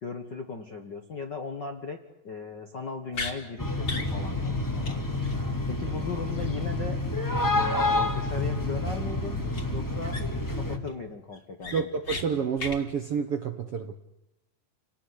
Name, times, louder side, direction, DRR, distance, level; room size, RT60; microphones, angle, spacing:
voice 1, 0.0-2.0 2.2-5.2 5.7-7.0 7.5-9.4 9.7-10.2 10.6-11.9, left 4 dB, 50° left, 1.4 m, -37 dB
sound 1, 3.1-3.4 3.8-4.1 4.5-4.6 4.8-5.0 5.2-5.4 9.5-9.6 10.1-10.5 10.9-11.0 11.3-12.2 12.6-12.8, left 3 dB, 30° left, 3.3 m, -35 dB
sound 2, 3.6-10.8, left 2 dB, 5° left, 2.1 m, -29 dB
voice 2, 11.7-13.9, right 6 dB, 60° right, 1.6 m, -29 dB
30.0 x 18.5 x 9.7 m
omnidirectional pair, 4.3 m